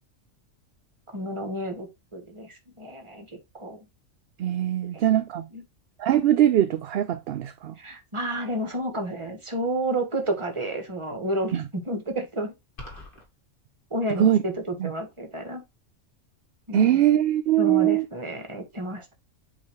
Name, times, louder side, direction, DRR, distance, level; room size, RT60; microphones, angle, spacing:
voice 1, 1.1-3.9 4.9-5.0 5.5-5.6 7.8-12.5 13.9-15.6 16.7-17.0 17.6-19.1, right 1 dB, 25° right, 1.4 m, -31 dB
voice 2, 4.4-5.5 6.0-7.7 11.5-11.6 14.2-14.4 14.8-14.9 16.7-18.0, right 12 dB, 65° right, 0.7 m, -21 dB
sound 1, 12.8-13.3, left 1 dB, 45° left, 2.2 m, -41 dB
8.3 x 3.1 x 4.4 m
omnidirectional pair, 1.3 m